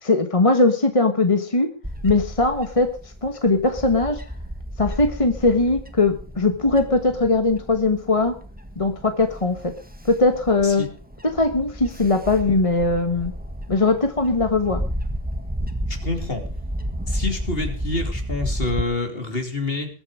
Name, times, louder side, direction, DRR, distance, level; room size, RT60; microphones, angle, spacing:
voice 1, 0.0-1.7 2.0-2.9 3.2-4.2 4.8-8.4 8.8-9.7 10.0-10.8 11.2-13.3 13.7-14.8, left 3 dB, 25° left, 7 dB, 1.2 m, -20 dB
Bird / Wind, 1.8-18.8, equal, 5° right, 1.5 m, -32 dB
voice 2, 15.9-16.4 17.1-19.9, left 3 dB, 45° left, 5 dB, 3.1 m, -27 dB
21.5 x 8.9 x 4.9 m, 0.40 s
omnidirectional pair, 1.4 m